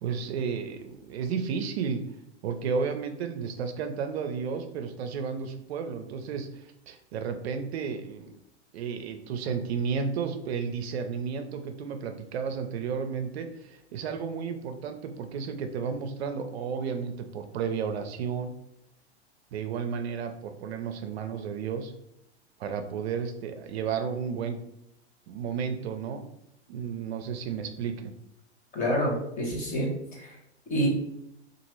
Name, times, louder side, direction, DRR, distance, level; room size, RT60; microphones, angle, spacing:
voice 1, 0.0-2.0 2.4-8.3 8.7-18.5 19.5-21.9 22.6-24.6 25.3-26.2 26.7-28.1, right 6 dB, 65° right, 7 dB, 0.5 m, -32 dB
voice 2, 28.7-30.3 30.7-30.9, equal, 25° left, -2 dB, 1.0 m, -28 dB
2.9 x 2.4 x 3.0 m, 0.79 s
hypercardioid pair, 110°, 34 cm